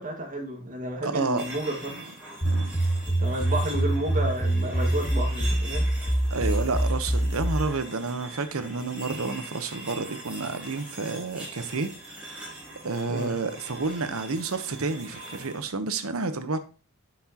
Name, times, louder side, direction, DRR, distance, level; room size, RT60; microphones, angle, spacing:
voice 1, 0.0-1.9 3.2-5.9 13.1-13.3, right 1 dB, 40° right, 1.9 m, -31 dB
voice 2, 1.0-1.4 1.9-2.0 2.4-2.7 6.3-11.9 12.8-16.6, right 3 dB, 70° right, 0.9 m, -30 dB
sound 1, 1.3-15.6, right 2 dB, 5° right, 4.2 m, -42 dB
sound 2, 2.4-7.7, right 1 dB, 30° left, 1.8 m, -25 dB
10.5 x 5.9 x 2.9 m
head